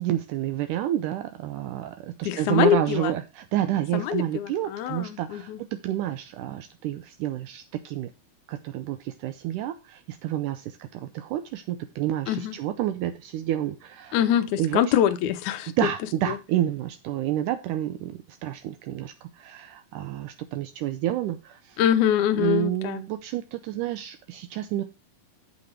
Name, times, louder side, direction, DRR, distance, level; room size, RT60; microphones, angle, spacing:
voice 1, 0.0-8.1 8.5-14.2 14.6-14.8 15.8-21.8 22.4-24.8, right 12 dB, 85° right, 1.8 m, -29 dB
voice 2, 2.3-3.1 3.9-5.6 12.3-12.5 14.1-15.7 16.3-16.4 21.8-23.0, left 10 dB, 75° left, 1.8 m, -24 dB
8.5 x 7.9 x 4.4 m
omnidirectional pair, 4.4 m